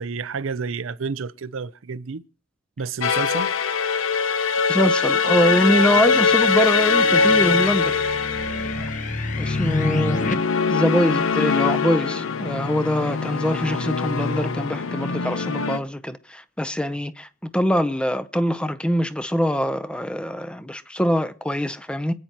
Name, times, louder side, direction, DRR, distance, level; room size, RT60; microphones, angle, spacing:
voice 1, 0.0-2.2 2.8-3.5, right 5 dB, 85° right, 0.6 m, -30 dB
sound 1, 3.0-15.8, left 5 dB, 85° left, 0.8 m, -22 dB
voice 2, 4.7-8.0 8.6-8.9 9.4-10.2 10.7-22.1, equal, 5° left, 0.6 m, -23 dB
sound 2, 5.5-10.3, left 2 dB, 40° left, 1.0 m, -29 dB
27.0 x 9.2 x 2.9 m
head